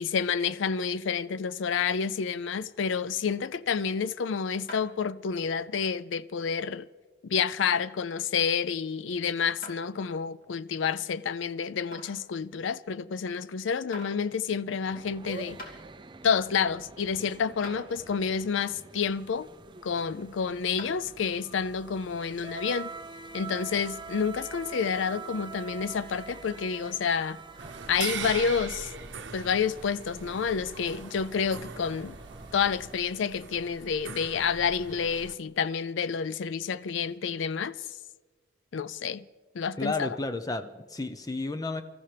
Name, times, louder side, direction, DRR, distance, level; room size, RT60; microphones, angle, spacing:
voice 1, 0.0-6.9 7.2-15.6 16.2-19.5 19.8-22.9 23.3-27.4 27.9-28.9 29.3-32.2 32.5-37.8 38.7-39.2 39.5-40.2, left 6 dB, 80° left, 0.4 m, -29 dB
sound 1, 4.7-5.1 5.6-5.7 6.4-6.5 7.7-7.9 9.6-9.8 10.4-10.5 11.9-12.3 13.3-13.4 13.9-14.2 15.2-15.3 15.6-15.8 17.1-17.2 17.6-17.8 20.8-21.0, left 1 dB, 45° left, 2.6 m, -43 dB
sound 2, 14.9-33.0, right 4 dB, 25° right, 0.4 m, -46 dB
sound 3, 27.6-35.3, right 6 dB, 70° right, 0.9 m, -41 dB
voice 2, 39.8-41.8, left 2 dB, 20° left, 0.6 m, -32 dB
25.0 x 14.0 x 3.4 m
head